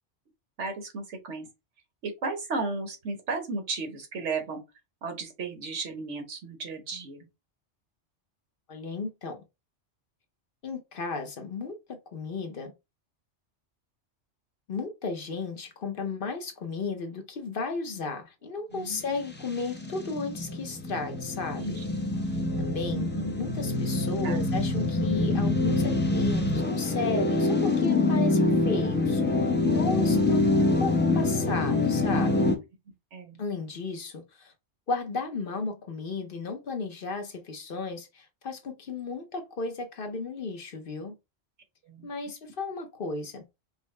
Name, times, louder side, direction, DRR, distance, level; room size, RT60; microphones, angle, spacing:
voice 1, 0.6-1.5 2.0-4.6 5.0-7.3 18.7-19.0 21.6-21.8 22.9-23.4 24.2-24.5 33.1-33.4 41.8-42.1, right 3 dB, 90° right, 1.4 m, -34 dB
voice 2, 8.7-9.4 10.6-12.7 14.7-21.8 22.6-23.1 23.4-32.6 33.4-34.5 34.9-41.2 42.0-43.4, left 4 dB, 55° left, 0.9 m, -34 dB
sound 1, 19.3-32.6, left 2 dB, 10° left, 0.5 m, -25 dB
4.9 x 2.1 x 3.2 m
omnidirectional pair, 1.2 m